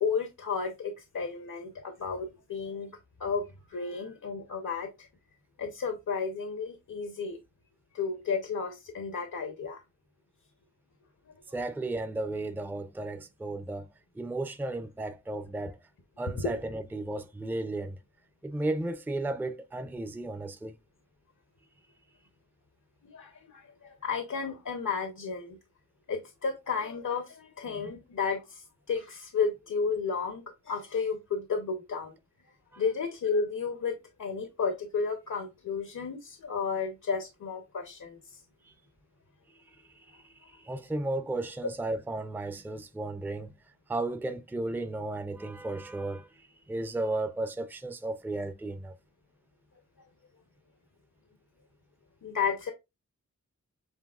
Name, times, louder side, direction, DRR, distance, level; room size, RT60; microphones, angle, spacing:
voice 1, 0.0-2.9 3.2-5.1 5.6-7.4 7.9-9.8 16.4-16.5 23.0-25.6 26.1-32.1 32.8-38.2 52.2-52.7, left 5 dB, 75° left, 0.8 m, -32 dB
voice 2, 11.5-13.9 14.2-15.8 16.2-18.0 18.4-20.7 32.7-32.8 39.9-43.5 43.9-46.3 46.7-48.9, right 2 dB, 5° right, 0.4 m, -34 dB
7.4 x 2.9 x 2.4 m
wide cardioid pair, 110°, 30 cm